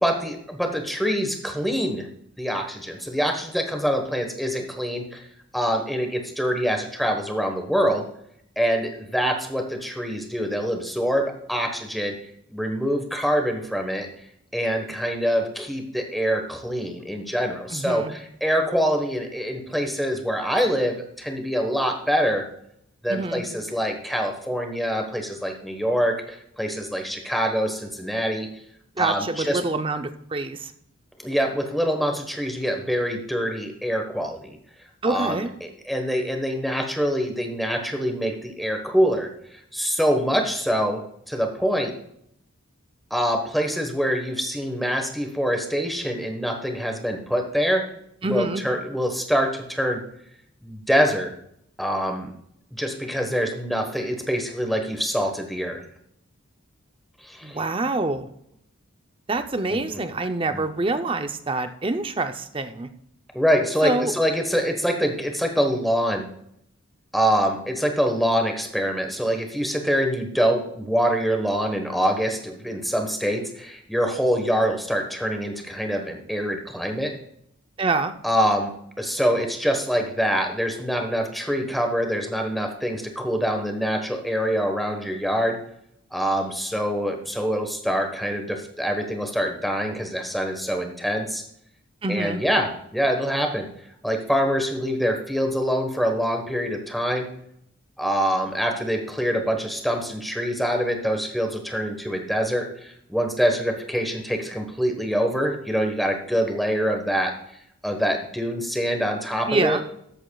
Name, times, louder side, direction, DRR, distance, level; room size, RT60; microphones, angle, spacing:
voice 1, 0.0-2.1 2.4-5.2 5.5-8.1 8.6-12.2 12.5-14.1 14.5-22.4 23.0-28.5 29.0-29.6 31.2-34.6 35.0-41.9 43.1-47.8 48.2-50.0 50.6-51.3 51.8-52.3 52.7-55.8 57.2-57.6 59.7-60.0 60.5-60.7 63.3-66.3 67.1-77.1 78.2-85.6 86.1-91.4 92.1-93.7 94.0-97.3 98.0-107.3 107.8-109.8, equal, ahead, 4 dB, 1.2 m, -25 dB
voice 2, 17.7-18.1 23.1-23.4 29.0-30.7 35.0-35.5 48.2-48.6 57.4-58.3 59.3-62.9 63.8-64.1 77.8-78.1 92.0-92.4 109.5-109.8, right 2 dB, 25° right, 8 dB, 0.6 m, -26 dB
13.5 x 8.1 x 2.3 m, 0.72 s
head